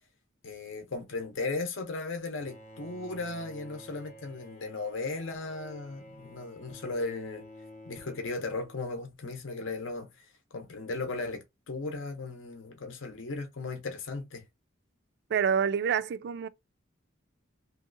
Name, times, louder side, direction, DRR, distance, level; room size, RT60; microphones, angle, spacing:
voice 1, 0.4-7.5 7.9-10.3 10.5-14.4, left 3 dB, 75° left, 0.7 m, -36 dB
Bowed string instrument, 2.4-9.2, equal, 35° left, 0.7 m, -51 dB
voice 2, 15.3-16.5, right 7 dB, 60° right, 0.3 m, -27 dB
3.1 x 2.6 x 2.5 m
head